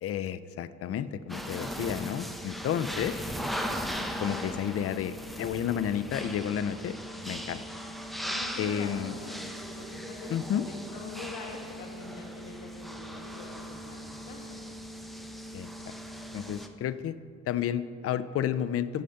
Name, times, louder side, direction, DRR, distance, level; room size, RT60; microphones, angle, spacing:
voice 1, 0.0-3.2 4.2-6.9 7.3-7.6 8.6-9.1 10.3-10.6 15.5-15.9 16.3-17.1 17.5-19.0, left 9 dB, 50° left, 14 dB, 0.4 m, -31 dB
sound 1, 1.3-16.7, equal, ahead, 0.7 m, -38 dB
voice 2, 8.2-14.6, left 3 dB, 75° left, 2 dB, 1.3 m, -44 dB
10.5 x 4.9 x 5.7 m, 2.1 s
cardioid pair, 90°, 30 cm